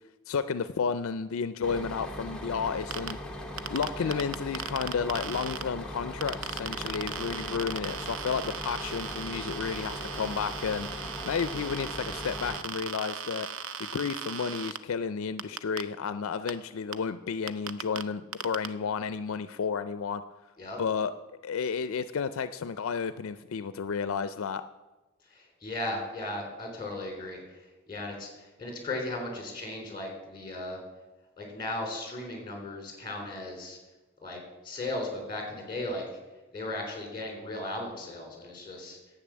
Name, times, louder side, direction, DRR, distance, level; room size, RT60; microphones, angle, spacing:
voice 1, 0.3-3.2 3.7-13.5 13.9-20.2 20.8-21.1 21.4-24.6, left 6 dB, 70° left, 13 dB, 0.4 m, -32 dB
Bus, 1.6-12.6, left 1 dB, 5° left, 0.9 m, -39 dB
sound 1, 2.9-3.1 3.6-5.6 6.2-14.8 15.4-15.8 16.5-16.6 16.9-17.0 17.5-18.0 18.3-18.7, right 7 dB, 60° right, 0.6 m, -37 dB
voice 2, 25.3-30.8 31.4-33.8 34.2-36.0 36.5-39.0, left 2 dB, 20° left, 2 dB, 3.4 m, -36 dB
10.5 x 8.1 x 7.3 m, 1.1 s
head